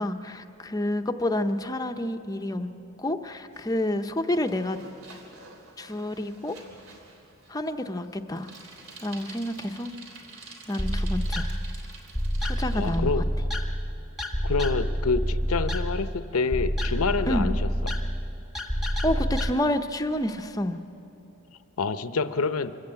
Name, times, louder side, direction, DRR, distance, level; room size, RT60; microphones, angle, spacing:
voice 1, 0.0-2.7 3.0-4.8 5.8-6.6 7.5-8.5 9.0-9.9 10.7-11.5 12.4-13.1 17.3-17.6 19.0-20.8, left 1 dB, 15° left, 7 dB, 0.6 m, -29 dB
Bicycle, 3.5-13.0, right 3 dB, 75° right, 3.2 m, -48 dB
sound 1, 10.8-19.5, equal, ahead, 1.1 m, -28 dB
voice 2, 12.7-13.2 14.4-17.9 21.8-22.8, left 4 dB, 85° left, 11 dB, 0.8 m, -27 dB
24.5 x 15.0 x 8.8 m, 2.9 s
head